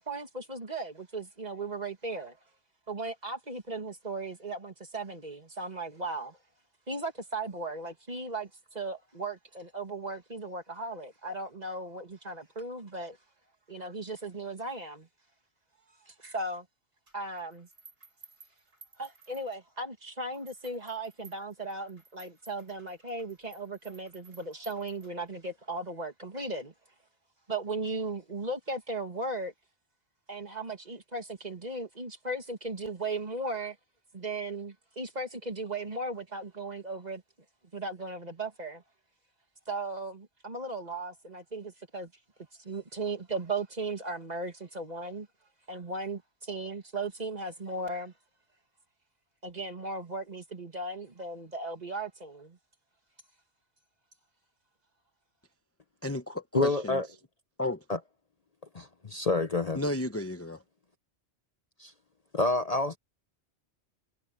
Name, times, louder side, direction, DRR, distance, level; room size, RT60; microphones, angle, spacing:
voice 1, 0.0-2.4 2.9-6.4 6.9-13.2 13.7-15.1 16.1-16.7 17.1-17.7 19.0-26.7 27.5-29.5 30.3-33.8 34.1-37.2 37.7-38.8 39.7-42.1 42.6-45.3 45.7-48.1 49.4-52.6, right 2 dB, 40° right, 2.4 m, -37 dB
sound 1, 17.1-19.9 20.3-25.5, right 4 dB, 85° right, 3.9 m, -57 dB
voice 2, 56.0-57.0 57.6-57.8 59.7-60.6, left 1 dB, 15° left, 0.8 m, -33 dB
voice 3, 56.5-57.1 57.9-58.0 58.7-59.8 61.8-61.9 62.3-63.0, left 2 dB, 35° left, 0.9 m, -28 dB
omnidirectional pair, 1.2 m